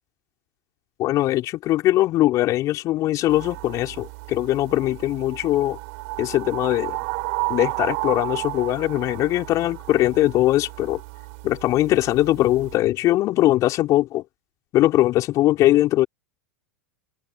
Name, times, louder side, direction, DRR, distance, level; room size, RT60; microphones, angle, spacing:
voice 1, 1.0-5.8 6.2-7.0 7.5-11.0 11.4-14.2 14.7-16.1, left 15 dB, 40° left, 5.1 m, -21 dB
sound 1, 3.3-12.8, right 33 dB, 55° right, 7.1 m, -33 dB
figure-of-eight pair, 90°, 8 cm